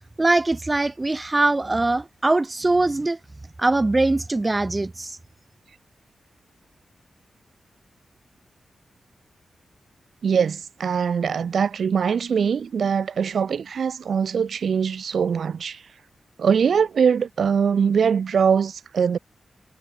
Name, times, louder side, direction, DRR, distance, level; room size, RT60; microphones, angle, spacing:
voice 1, 0.2-3.2 3.6-5.2, right 2 dB, 20° right, 0.5 m, -22 dB
voice 2, 10.2-15.8 16.4-19.2, right 6 dB, 70° right, 2.9 m, -22 dB
wide cardioid pair, 120°, 0 cm